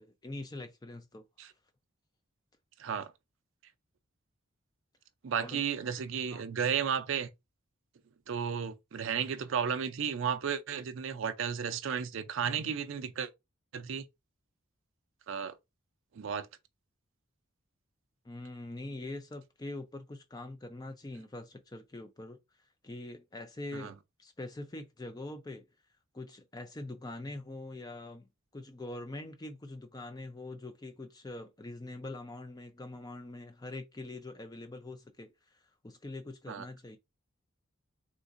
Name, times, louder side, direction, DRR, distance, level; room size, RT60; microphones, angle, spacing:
voice 1, 0.0-1.5 5.3-5.6 5.9-6.0 6.3-6.4 18.2-22.4 22.8-25.7 26.1-28.3 28.5-37.0, left 2 dB, 20° left, 0.4 m, -44 dB
voice 2, 2.8-3.1 5.2-7.3 8.3-13.3 13.7-14.1 15.3-15.5 16.2-16.5 23.7-23.9 36.5-36.6, right 7 dB, 65° right, 0.4 m, -33 dB
3.8 x 2.4 x 2.5 m
head